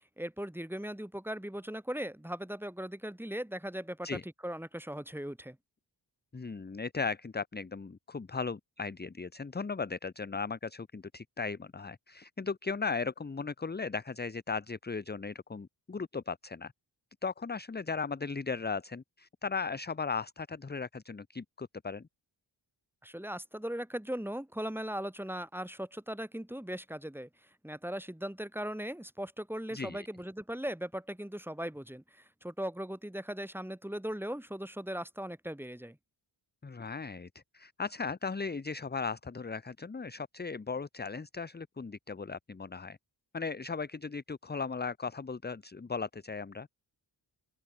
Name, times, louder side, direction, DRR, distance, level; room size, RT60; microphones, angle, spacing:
voice 1, 0.2-5.6 23.0-27.3 27.6-36.0, equal, 5° right, 2.7 m, -38 dB
voice 2, 6.3-16.7 17.2-22.0 29.7-30.1 36.6-37.3 37.5-43.0 43.3-46.7, left 4 dB, 20° left, 0.8 m, -37 dB
open air
wide cardioid pair, 95°, 46 cm